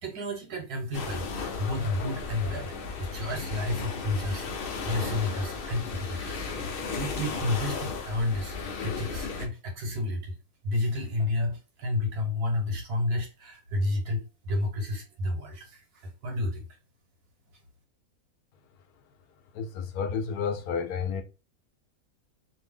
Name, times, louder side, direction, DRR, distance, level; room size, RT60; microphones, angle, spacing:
voice 1, 0.0-1.2 1.5-10.4 10.6-16.7, left 2 dB, 85° right, 1.6 m, -31 dB
sound 1, 0.9-9.5, left 4 dB, 55° left, 0.6 m, -35 dB
voice 2, 19.5-21.2, left 6 dB, 80° left, 1.1 m, -31 dB
2.8 x 2.7 x 3.4 m
omnidirectional pair, 1.6 m